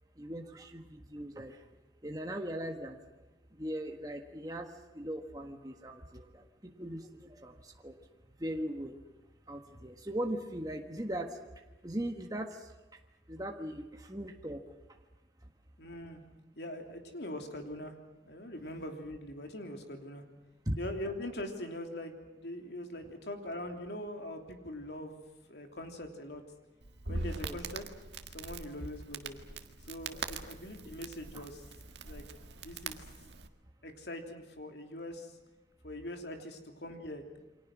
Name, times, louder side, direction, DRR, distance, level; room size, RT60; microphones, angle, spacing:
voice 1, 0.2-1.6 2.0-3.0 3.6-4.7 4.9-6.4 6.8-7.9 8.4-9.0 9.5-11.3 11.8-12.7 13.3-14.6 20.7-20.8 27.4-27.6 28.8-28.9 31.3-31.4, right 1 dB, 20° right, 3 dB, 1.5 m, -39 dB
voice 2, 15.8-16.2 16.6-17.9 18.2-20.2 20.8-25.2 25.5-26.4 27.1-27.8 28.3-29.4 29.9-31.6 32.0-32.2 32.6-33.0 33.8-35.3 35.8-37.2, left 1 dB, 65° left, 4 dB, 3.2 m, -42 dB
Crackle, 26.8-33.5, right 3 dB, 70° right, 1.7 m, -42 dB
29.0 x 24.0 x 6.2 m, 1.1 s
head